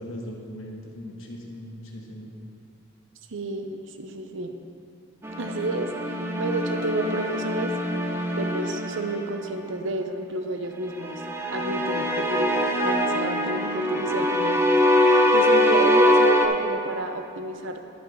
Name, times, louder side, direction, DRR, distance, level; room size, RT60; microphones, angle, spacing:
voice 1, 0.0-2.3, equal, 70° left, -1 dB, 1.5 m, -39 dB
voice 2, 3.3-4.6 5.4-7.7 8.4-11.2 11.5-14.6 15.3-17.9, right 2 dB, 60° right, 6 dB, 0.7 m, -30 dB
sound 1, 5.2-9.6 11.0-16.5, left 1 dB, 10° right, 0.5 m, -23 dB
11.5 x 6.0 x 5.5 m, 2.6 s
head